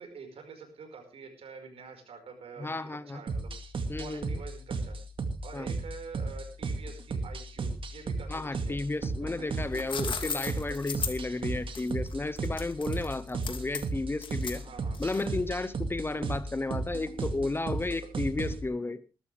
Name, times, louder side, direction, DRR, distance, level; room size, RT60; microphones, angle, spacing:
voice 1, 0.0-3.5 4.0-5.0 5.4-8.8 9.2-9.4 14.5-15.0 16.1-16.2, right 5 dB, 85° right, 5 dB, 5.1 m, -47 dB
voice 2, 2.6-3.2 3.9-4.4 5.5-5.7 8.3-14.6 15.0-19.0, left 2 dB, 25° left, 15 dB, 0.8 m, -33 dB
sound 1, 3.3-18.6, right 3 dB, 60° right, 2.2 m, -35 dB
sound 2, 9.5-15.5, left 5 dB, 60° left, 2.5 m, -37 dB
20.5 x 13.0 x 3.4 m, 0.31 s
wide cardioid pair, 95°, 10 cm